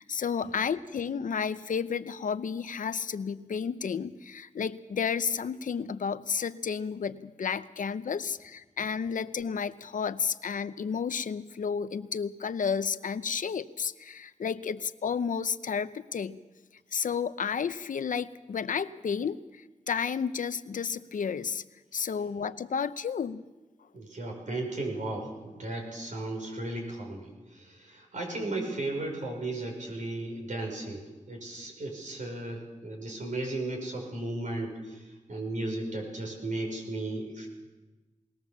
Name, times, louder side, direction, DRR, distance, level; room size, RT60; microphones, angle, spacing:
voice 1, 0.0-16.4 16.9-19.4 19.9-21.6 21.9-23.4, left 6 dB, 80° left, 13 dB, 0.7 m, -32 dB
voice 2, 23.9-37.5, right 2 dB, 70° right, 1 dB, 5.7 m, -35 dB
20.5 x 19.5 x 7.2 m, 1.2 s
wide cardioid pair, 125°, 13 cm